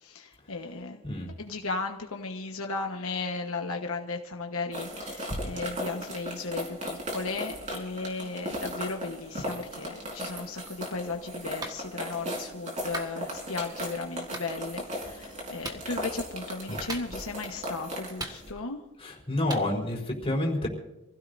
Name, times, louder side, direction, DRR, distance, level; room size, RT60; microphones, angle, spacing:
voice 1, 0.0-1.0 1.4-18.8, left 3 dB, 80° left, 3 dB, 1.3 m, -35 dB
sound 1, 4.7-18.5, equal, 35° right, 3.9 m, -37 dB
Clapping, 11.6-11.8 12.9-13.1 14.3-14.5 15.6-15.9 16.9-17.4 18.2-18.8 19.5-19.7, right 2 dB, 20° right, 1.6 m, -37 dB
voice 2, 19.0-20.7, left 1 dB, 25° left, -2 dB, 4.2 m, -29 dB
27.0 x 16.5 x 2.7 m, 0.93 s
head